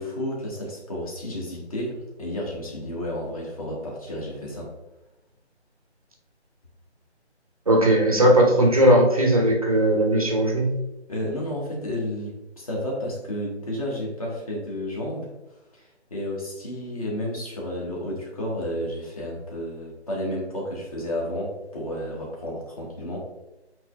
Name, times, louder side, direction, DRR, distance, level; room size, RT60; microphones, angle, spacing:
voice 1, 0.0-4.7 11.1-15.3 15.7-23.2, left 1 dB, 30° left, -2 dB, 1.3 m, -31 dB
voice 2, 7.7-10.7, right 1 dB, 35° right, 0 dB, 0.6 m, -18 dB
7.9 x 3.0 x 2.2 m, 0.99 s
figure-of-eight pair, 150°, 34 cm